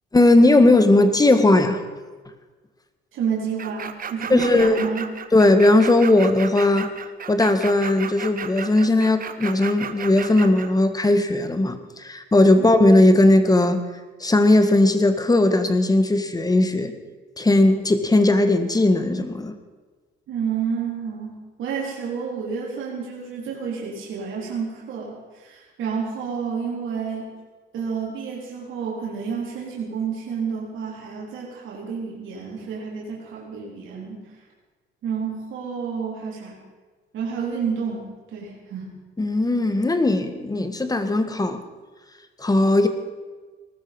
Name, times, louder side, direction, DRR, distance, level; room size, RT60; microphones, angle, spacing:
voice 1, 0.1-1.8 4.3-4.8 5.3-6.9 7.3-13.8 14.2-16.9 17.4-19.5 39.2-41.6 42.4-42.9, left 2 dB, 20° left, 9 dB, 1.7 m, -18 dB
voice 2, 3.1-5.1 20.3-27.3 27.7-34.2 35.0-36.6 37.1-38.9, right 6 dB, 80° right, -3 dB, 4.1 m, -30 dB
sound 1, 3.6-10.7, right 7 dB, 45° right, 1.2 m, -34 dB
19.0 x 13.0 x 5.5 m, 1.4 s
cardioid pair, 90°, 20 cm